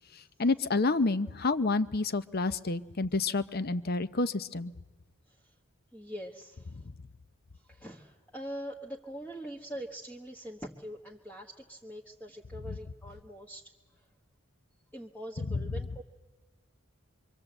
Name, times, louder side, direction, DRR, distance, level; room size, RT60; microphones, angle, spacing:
voice 1, 0.4-4.7, left 3 dB, 45° left, 13 dB, 0.7 m, -29 dB
voice 2, 5.9-6.8 7.5-14.1 14.9-16.0, equal, 5° left, -3 dB, 1.3 m, -43 dB
25.5 x 23.5 x 8.0 m, 1.2 s
head